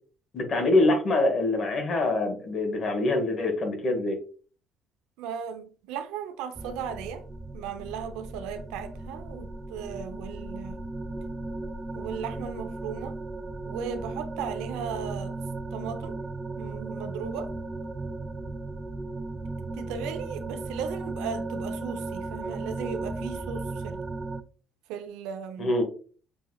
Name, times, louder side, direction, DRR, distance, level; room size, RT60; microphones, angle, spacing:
voice 1, 0.3-4.2 25.6-25.8, left 2 dB, 45° left, 1.5 m, -24 dB
voice 2, 5.2-7.2 7.5-10.8 11.9-13.2 13.6-15.4 15.7-16.2 16.6-17.5 19.7-24.0 24.9-25.7, right 7 dB, 90° right, 0.5 m, -36 dB
sound 1, 6.6-24.4, right 2 dB, 20° right, 0.3 m, -36 dB
6.0 x 2.9 x 2.3 m
cardioid pair, 95°, 0 cm